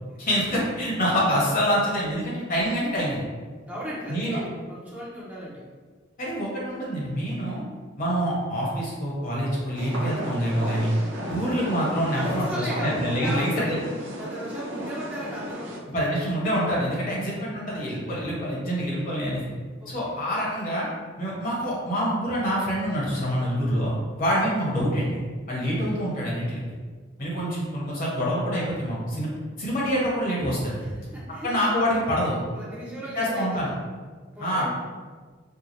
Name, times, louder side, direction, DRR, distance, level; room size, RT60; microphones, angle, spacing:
voice 1, 0.2-3.2 4.1-4.4 6.2-7.6 8.0-10.9 11.3-13.8 15.9-19.4 19.9-20.9 21.2-23.9 24.2-25.2 25.5-26.6 27.2-29.3 29.6-30.8 31.4-32.4 33.2-33.7 34.4-34.7, equal, 45° left, -5 dB, 1.2 m, -26 dB
voice 2, 3.7-5.6 12.1-13.8 14.2-15.7 19.8-20.2 27.2-27.6 30.8-31.5 32.5-33.7 34.3-34.7, equal, 10° right, -8 dB, 0.7 m, -36 dB
sound 1, 9.7-15.8, equal, 75° right, 0.6 m, -34 dB
4.6 x 2.3 x 3.1 m, 1.5 s
head